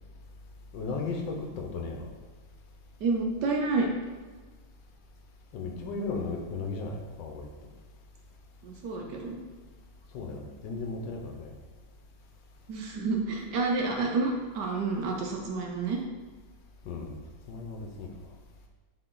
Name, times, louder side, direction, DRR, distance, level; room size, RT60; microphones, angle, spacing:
voice 1, 0.7-2.1 5.5-7.5 10.1-11.5 16.8-17.2 17.5-18.1, left 3 dB, 70° left, 2 dB, 1.4 m, -35 dB
voice 2, 3.0-3.9 8.6-9.4 12.7-16.0, right 3 dB, 65° right, 1 dB, 1.2 m, -29 dB
6.4 x 4.7 x 3.8 m, 1.4 s
omnidirectional pair, 2.2 m